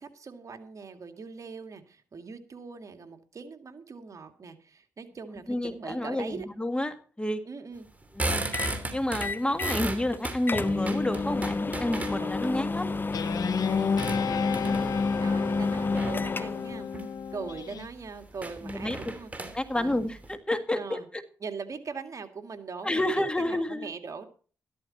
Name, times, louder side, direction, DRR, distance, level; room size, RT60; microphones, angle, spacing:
voice 1, 0.0-6.5 7.5-7.9 12.2-12.6 13.7-16.9 17.3-19.3 19.7-20.0 20.7-21.1 21.4-24.3, right 5 dB, 55° right, 6 dB, 2.1 m, -41 dB
voice 2, 5.5-7.4 8.2-8.5 8.9-12.9 18.6-19.0 19.5-21.0 22.8-23.9, left 1 dB, 15° left, 9 dB, 1.8 m, -30 dB
sound 1, 7.9-12.5 13.0-15.1 15.8-16.3 16.8-17.1 17.5-17.6 17.8-17.9 18.3-20.3, right 1 dB, 20° right, 3.1 m, -35 dB
sound 2, 8.5-8.8 9.2-9.8 10.1-10.2 10.5-16.8, left 3 dB, 30° left, 0.6 m, -30 dB
Guitar, 13.1-17.9, left 7 dB, 70° left, 0.9 m, -31 dB
13.5 x 13.0 x 4.1 m, 0.40 s
cardioid pair, 70°, 7 cm